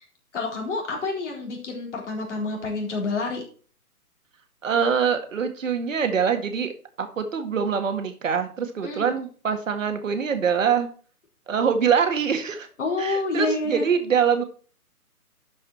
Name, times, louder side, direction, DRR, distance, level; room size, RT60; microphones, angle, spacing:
voice 1, 0.3-3.4 8.8-9.1 12.8-13.9, left 3 dB, 50° left, 0 dB, 4.1 m, -28 dB
voice 2, 4.6-10.9 11.5-12.7 13.0-14.4, right 6 dB, 55° right, 7 dB, 1.9 m, -24 dB
11.5 x 5.5 x 4.5 m, 0.41 s
figure-of-eight pair, 145°, 45 cm